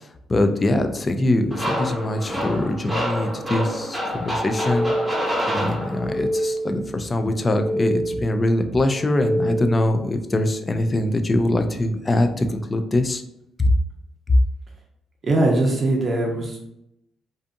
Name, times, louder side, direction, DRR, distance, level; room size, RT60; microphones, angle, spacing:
voice 1, 0.3-4.9 5.5-13.2, left 1 dB, 25° left, 7 dB, 0.3 m, -23 dB
sound 1, 1.5-6.3, equal, 10° right, 0.9 m, -27 dB
sound 2, 4.3-5.4 5.8-6.9 7.3-8.4 8.8-10.0, equal, 60° left, 0.6 m, -27 dB
voice 2, 15.2-16.6, right 2 dB, 40° right, 0 dB, 0.6 m, -21 dB
2.5 x 2.5 x 2.4 m, 0.80 s
cardioid pair, 90°, 0 cm